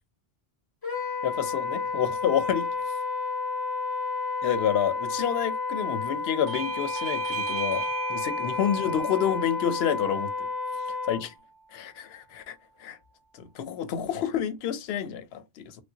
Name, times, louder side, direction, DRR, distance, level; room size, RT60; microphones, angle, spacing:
Wind instrument woodwind instrument, 0.8-11.2, left 4 dB, 25° left, 0.7 m, -31 dB
voice 1, 1.2-2.7 4.4-10.5 11.1-11.3 11.7-13.0 13.4-15.8, left 9 dB, 70° left, 0.8 m, -29 dB
Bell / Doorbell, 6.5-11.6, right 6 dB, 55° right, 0.6 m, -38 dB
3.2 x 2.5 x 2.7 m
omnidirectional pair, 1.2 m